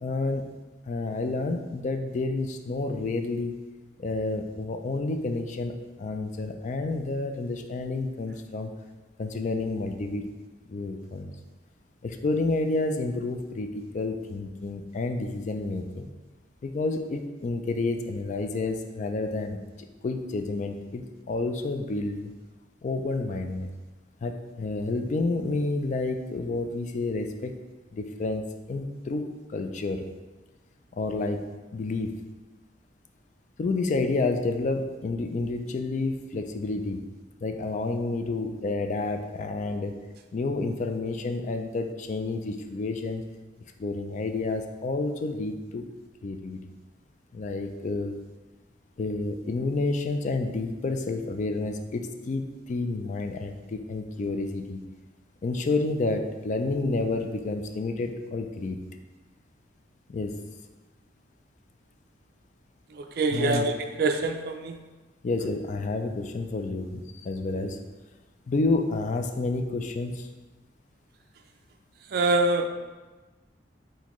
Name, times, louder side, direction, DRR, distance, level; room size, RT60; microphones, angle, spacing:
voice 1, 0.0-0.4 0.9-3.6 4.0-8.7 9.2-10.3 10.7-11.3 12.0-16.1 16.6-19.6 20.0-22.3 22.8-23.7 24.2-27.5 27.9-28.4 28.7-29.2 29.5-30.1 30.9-31.4 31.7-32.2 33.6-37.0 37.4-39.9 40.3-43.2 43.8-45.9 46.2-46.6 47.3-48.2 49.0-54.8 55.4-58.8 60.1-60.3 63.3-63.7 65.2-67.8 68.5-70.3, left 3 dB, 40° left, 5 dB, 0.3 m, -29 dB
voice 2, 63.2-63.7 64.0-64.7 72.1-72.7, right 2 dB, 55° right, 5 dB, 0.4 m, -24 dB
4.2 x 3.7 x 3.0 m, 1.2 s
head